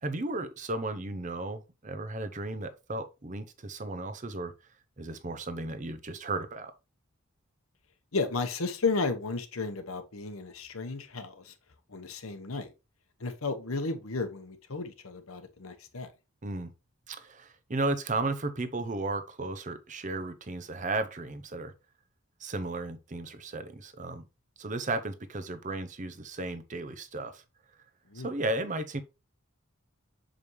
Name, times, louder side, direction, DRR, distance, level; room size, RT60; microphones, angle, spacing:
voice 1, 0.0-4.5 5.0-6.7 16.4-16.7 17.1-21.7 22.4-24.2 24.6-27.4 28.1-29.0, right 2 dB, 35° right, 0.7 m, -34 dB
voice 2, 8.1-11.5 11.9-12.7 13.2-16.1 28.1-28.3, left 3 dB, 85° left, 1.1 m, -33 dB
6.9 x 5.1 x 3.1 m
head